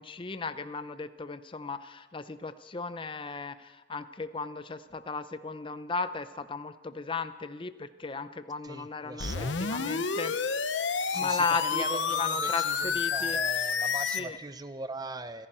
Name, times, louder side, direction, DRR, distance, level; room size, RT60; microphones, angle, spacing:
voice 1, 0.0-10.4 11.1-13.4 14.1-14.4, left 4 dB, 30° left, 12 dB, 0.6 m, -36 dB
voice 2, 8.6-9.5 11.1-15.5, right 3 dB, 20° right, 11 dB, 0.8 m, -40 dB
sound 1, 9.2-14.2, left 5 dB, 90° left, 0.9 m, -29 dB
28.5 x 11.0 x 4.4 m, 1.2 s
head